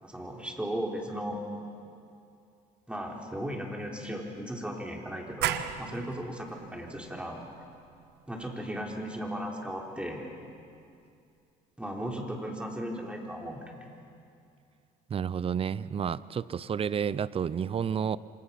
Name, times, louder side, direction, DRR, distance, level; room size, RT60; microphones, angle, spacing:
voice 1, 0.0-1.4 2.9-7.4 8.3-10.2 11.8-13.8, equal, 5° right, -1 dB, 3.9 m, -36 dB
sound 1, 5.4-10.8, right 11 dB, 80° right, 1.0 m, -38 dB
voice 2, 15.1-18.2, right 7 dB, 35° right, 18 dB, 0.6 m, -30 dB
27.0 x 26.0 x 5.9 m, 2.5 s
cardioid pair, 110°, 17 cm